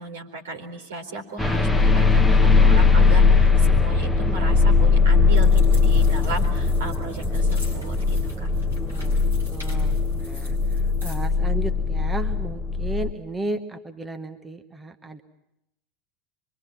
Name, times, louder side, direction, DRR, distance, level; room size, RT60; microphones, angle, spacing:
voice 1, 0.0-8.5, right 3 dB, 70° right, 3 dB, 4.1 m, -35 dB
sound 1, 1.4-13.1, left 4 dB, 5° left, 1.3 m, -19 dB
sound 2, 5.3-11.3, left 1 dB, 90° right, 6.4 m, -46 dB
voice 2, 8.8-9.1 9.5-15.2, right 2 dB, 15° right, 6 dB, 1.4 m, -34 dB
26.0 x 24.0 x 7.4 m, 0.86 s
figure-of-eight pair, 80°, 0 cm